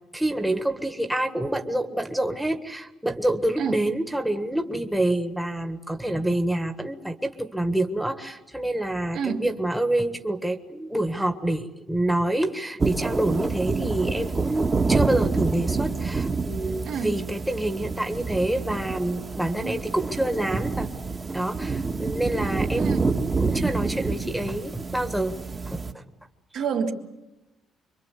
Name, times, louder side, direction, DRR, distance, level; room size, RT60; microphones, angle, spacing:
voice 1, 0.1-20.9 21.3-23.0 23.4-25.3 25.7-26.0, right 1 dB, 5° right, 5 dB, 1.6 m, -27 dB
voice 2, 9.1-9.5 16.8-17.1 19.6-19.8 22.8-23.1 26.5-26.9, right 6 dB, 70° right, 2 dB, 3.5 m, -28 dB
sound 1, 12.8-25.9, right 4 dB, 25° right, 1.6 m, -27 dB
26.5 x 23.5 x 8.3 m, 0.98 s
cardioid pair, 125°, 0 cm